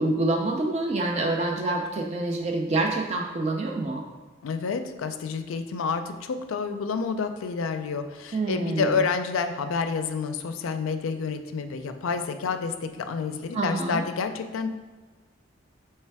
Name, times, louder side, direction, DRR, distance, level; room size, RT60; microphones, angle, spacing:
voice 1, 0.0-4.0 8.3-8.9 13.5-14.0, right 2 dB, 30° right, 2 dB, 0.3 m, -26 dB
voice 2, 4.4-14.7, left 5 dB, 80° left, 8 dB, 0.4 m, -29 dB
3.3 x 3.2 x 4.6 m, 1.4 s
head